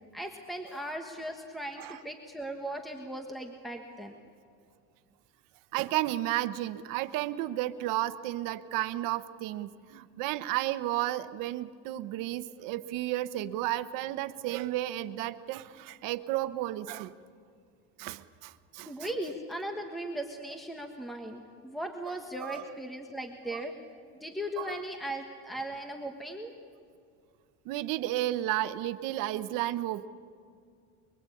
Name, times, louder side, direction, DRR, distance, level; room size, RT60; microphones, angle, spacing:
voice 1, 0.1-4.2 18.9-23.7 24.2-26.5, right 1 dB, ahead, 4 dB, 1.4 m, -38 dB
voice 2, 5.7-17.1 18.0-18.9 22.4-22.6 24.6-24.8 27.6-30.1, right 15 dB, 70° right, 12 dB, 1.1 m, -32 dB
24.0 x 23.5 x 8.6 m, 2.2 s
cardioid pair, 145°, 34 cm